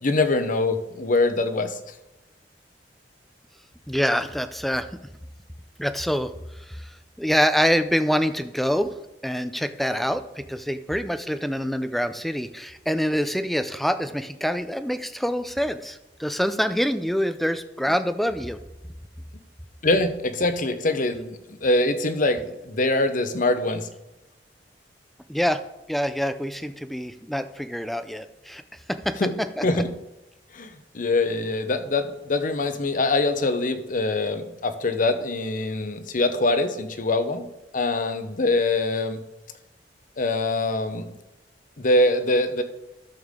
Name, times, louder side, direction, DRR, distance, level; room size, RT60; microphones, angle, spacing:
voice 1, 0.0-1.9 19.8-23.9 29.2-29.3 29.6-29.9 30.5-37.5 37.7-39.2 40.2-41.1 41.8-42.6, left 2 dB, 50° left, 9 dB, 0.9 m, -24 dB
voice 2, 3.9-4.9 5.8-6.3 6.7-6.9 7.2-8.9 9.2-18.6 25.3-25.6 25.9-28.6 28.9-29.2 29.6-29.7, equal, ahead, 10 dB, 0.5 m, -25 dB
12.5 x 7.0 x 3.7 m, 0.97 s
head